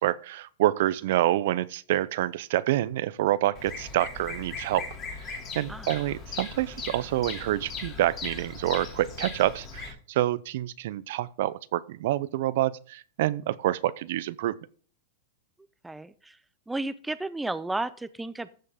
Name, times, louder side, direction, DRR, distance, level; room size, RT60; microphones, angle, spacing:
voice 1, 0.0-4.9 5.3-14.6, right 14 dB, 65° right, 0.6 m, -27 dB
Bird vocalization bird call bird song, 3.5-9.9, left 4 dB, 25° left, 2.7 m, -39 dB
voice 2, 15.8-16.4 16.7-18.5, right 2 dB, 5° right, 0.4 m, -33 dB
14.5 x 5.6 x 3.6 m
supercardioid pair, 145°, 0 cm